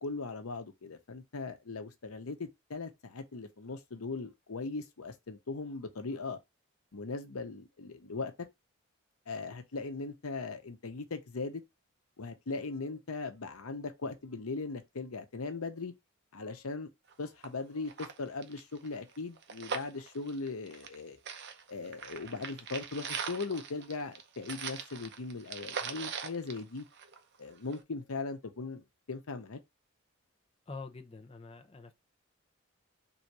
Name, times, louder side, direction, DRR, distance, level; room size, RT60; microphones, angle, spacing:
voice 1, 0.0-6.4 6.9-8.3 9.3-11.6 12.2-15.9 16.3-16.9 17.2-21.2 21.7-26.9 27.4-29.6, left 3 dB, 90° left, 0.8 m, -39 dB
sound 1, 17.1-17.2 17.4-17.5 17.8-21.0 21.3-27.4 27.7-27.8, right 6 dB, 55° right, 0.7 m, -41 dB
voice 2, 30.7-31.9, left 3 dB, 25° left, 0.7 m, -45 dB
3.8 x 2.8 x 4.6 m
head